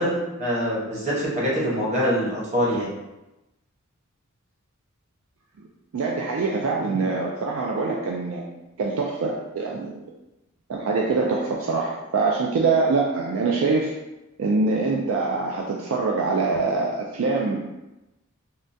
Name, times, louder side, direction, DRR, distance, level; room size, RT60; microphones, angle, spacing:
voice 1, 0.0-2.9, equal, 30° right, -7 dB, 1.0 m, -24 dB
voice 2, 5.9-8.4 8.8-10.1 10.7-13.9 14.4-17.6, right 4 dB, 65° right, -1 dB, 0.3 m, -24 dB
3.6 x 2.2 x 2.6 m, 0.99 s
head